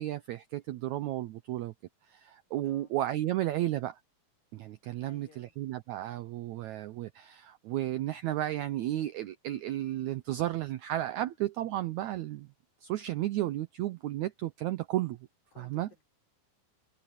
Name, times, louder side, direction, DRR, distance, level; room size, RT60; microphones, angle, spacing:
voice 1, 0.0-1.7 2.1-4.0 4.5-12.5 12.8-15.2 15.6-15.9, right 14 dB, 90° right, 1.6 m, -33 dB
voice 2, 2.6-3.0 5.0-5.5 15.5-16.0, left 4 dB, 75° left, 8.3 m, -58 dB
omnidirectional pair, 4.1 m